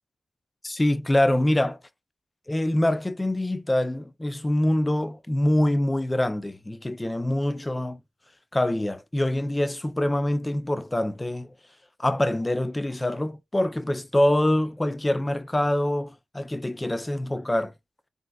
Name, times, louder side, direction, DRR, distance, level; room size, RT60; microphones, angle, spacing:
voice 1, 0.6-1.8 2.5-8.0 8.5-11.5 12.0-17.7, left 1 dB, 20° left, 0.4 m, -25 dB
3.9 x 2.4 x 2.3 m
cardioid pair, 45°, 0 cm